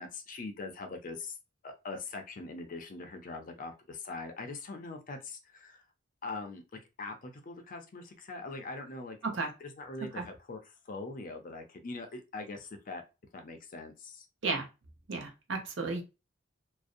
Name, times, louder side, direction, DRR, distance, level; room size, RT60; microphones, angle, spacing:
voice 1, 0.0-1.3 1.6-5.8 6.2-6.6 7.0-9.2 9.6-13.0 13.3-14.3, left 3 dB, 40° left, 0.5 m, -42 dB
voice 2, 15.1-16.0, right 3 dB, 70° right, 0.7 m, -33 dB
2.5 x 2.0 x 2.4 m
head